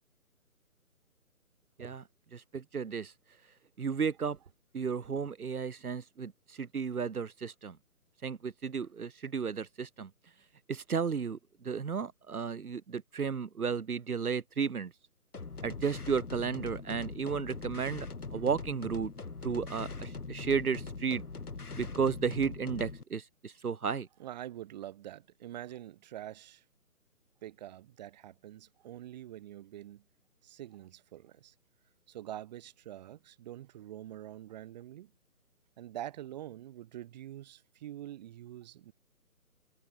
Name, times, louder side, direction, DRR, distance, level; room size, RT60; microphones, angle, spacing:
voice 1, 2.3-3.1 3.8-4.4 4.7-7.8 8.2-10.1 10.7-11.4 11.6-14.9 15.6-18.1 18.3-19.1 19.4-21.2 21.7-24.1, right 6 dB, 75° right, 1.4 m, -33 dB
sound 1, 15.3-23.0, left 4 dB, 90° left, 2.6 m, -42 dB
voice 2, 24.2-26.6 27.4-30.0 30.4-31.5 32.1-35.1 35.8-38.9, right 12 dB, 30° right, 5.2 m, -45 dB
figure-of-eight pair, 155°, 44 cm